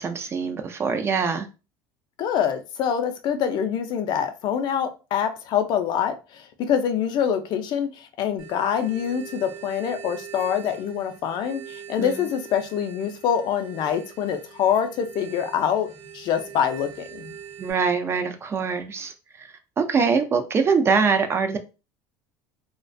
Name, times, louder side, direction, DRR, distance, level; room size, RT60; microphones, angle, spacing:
voice 1, 0.0-1.5 12.0-12.2 17.6-19.5 19.8-21.6, right 5 dB, 25° right, 7 dB, 0.3 m, -23 dB
voice 2, 2.2-17.3, left 8 dB, 50° left, 8 dB, 0.4 m, -25 dB
sound 1, 8.4-17.7, right 8 dB, 55° right, 0.9 m, -43 dB
2.3 x 2.1 x 2.5 m, 0.31 s
cardioid pair, 125°, 9 cm